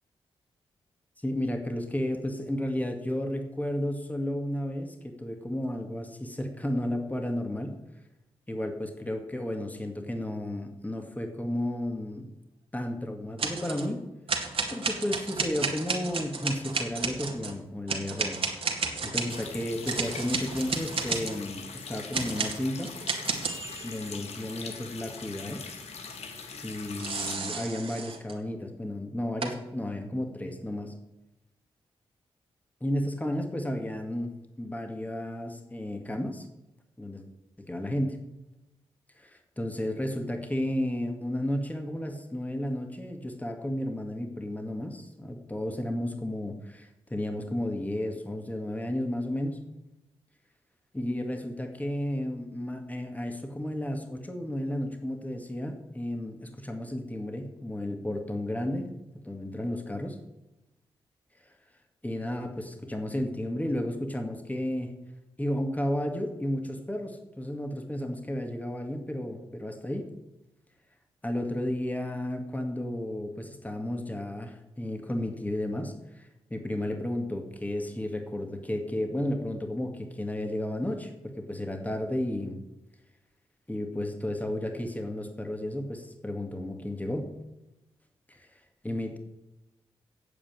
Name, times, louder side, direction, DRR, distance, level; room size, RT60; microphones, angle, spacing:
voice 1, 1.2-7.8 8.5-12.3 12.7-14.0 14.7-22.9 23.8-25.6 26.6-30.9 32.8-36.5 37.0-37.2 37.6-38.2 39.2-49.6 50.9-58.9 59.2-60.2 62.0-64.9 65.4-70.1 71.2-82.6 83.7-87.3 88.8-89.2, left 1 dB, 15° left, 4 dB, 2.0 m, -33 dB
sound 1, 13.4-13.9 14.3-17.5 17.9-21.4 22.1-24.1 27.0-28.4 29.4-29.5, right 4 dB, 55° right, 2.1 m, -32 dB
Water tap faucet, 19.3-27.3, left 5 dB, 75° left, 1.6 m, -42 dB
8.8 x 7.5 x 8.9 m, 0.97 s
supercardioid pair, 45°, 11 cm